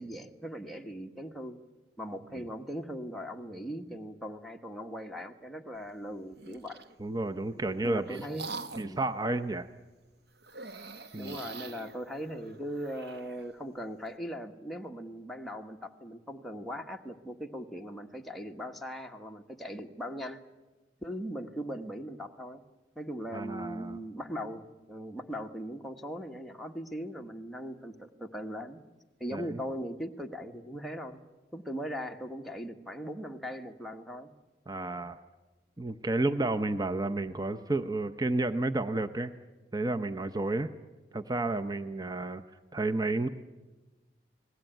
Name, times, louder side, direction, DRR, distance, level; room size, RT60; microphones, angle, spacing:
voice 1, 0.0-1.6 2.0-6.8 7.8-9.0 11.2-20.4 21.0-22.6 22.9-28.8 29.2-31.2 31.5-34.3, equal, ahead, 1 dB, 1.4 m, -39 dB
sound 1, 6.3-6.9 7.6-9.0 10.4-13.5, right 3 dB, 60° right, 1.3 m, -44 dB
voice 2, 7.0-8.3 8.8-9.7 11.1-11.4 23.3-24.0 29.3-29.6 34.7-35.2 35.8-39.3 39.7-40.7 41.1-42.4 42.7-43.3, right 2 dB, 20° right, 8 dB, 0.8 m, -31 dB
29.5 x 19.5 x 9.1 m, 1.2 s
head